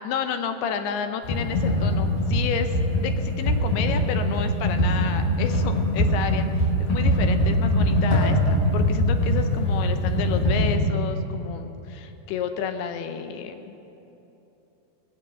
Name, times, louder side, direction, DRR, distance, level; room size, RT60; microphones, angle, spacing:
voice 1, 0.0-13.8, left 7 dB, 80° left, 8 dB, 2.5 m, -31 dB
Computer keyboard, 1.2-10.7, left 1 dB, 40° left, 4.1 m, -22 dB
19.0 x 8.0 x 6.4 m, 3.0 s
omnidirectional pair, 5.0 m